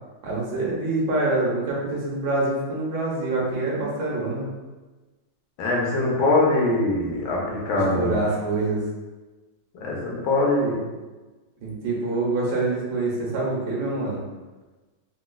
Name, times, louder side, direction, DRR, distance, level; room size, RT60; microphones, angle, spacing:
voice 1, 0.2-4.5 7.7-8.8 11.6-14.2, right 2 dB, 70° right, -4 dB, 1.4 m, -26 dB
voice 2, 5.6-8.2 9.8-10.8, left 2 dB, 80° left, -3 dB, 1.5 m, -22 dB
3.9 x 2.3 x 2.3 m, 1.2 s
omnidirectional pair, 2.2 m